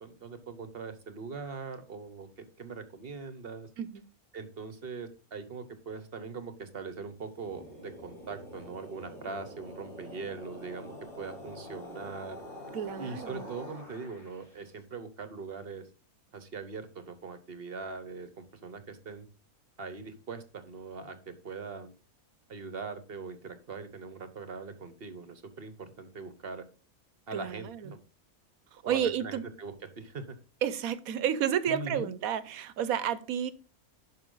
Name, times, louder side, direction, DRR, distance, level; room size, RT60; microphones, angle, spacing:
voice 1, 0.0-3.7 4.3-12.4 13.0-15.9 16.3-19.3 19.8-21.9 22.5-26.6 27.3-28.0 28.8-30.4 31.7-32.1, right 4 dB, 45° right, 1.1 m, -41 dB
sound 1, 7.2-14.6, left 1 dB, 40° left, 3.7 m, -46 dB
voice 2, 12.7-13.5 27.3-27.9 28.7-29.4 30.6-33.5, right 9 dB, 75° right, 1.2 m, -31 dB
11.5 x 5.3 x 3.9 m
omnidirectional pair, 1.5 m